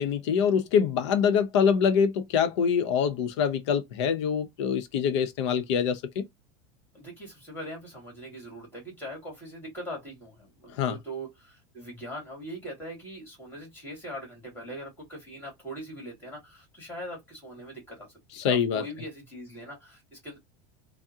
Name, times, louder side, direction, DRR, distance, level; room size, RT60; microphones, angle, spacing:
voice 1, 0.0-6.2 10.7-11.0 18.4-18.8, left 7 dB, 80° left, 0.7 m, -25 dB
voice 2, 6.9-18.1 18.3-20.4, equal, 15° left, 1.9 m, -41 dB
3.5 x 2.0 x 2.7 m
supercardioid pair, 155°, 14 cm